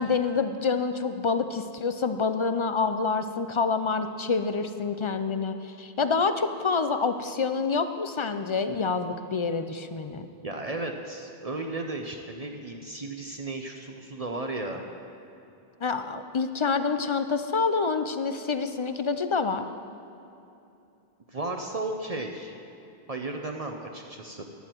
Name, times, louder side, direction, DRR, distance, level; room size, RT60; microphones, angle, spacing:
voice 1, 0.0-10.3 15.8-19.7, left 4 dB, 40° left, 9 dB, 0.4 m, -27 dB
voice 2, 10.4-14.8 21.3-22.5 23.1-24.4, right 2 dB, 40° right, 3 dB, 0.8 m, -34 dB
15.0 x 11.0 x 4.5 m, 2.8 s
omnidirectional pair, 1.0 m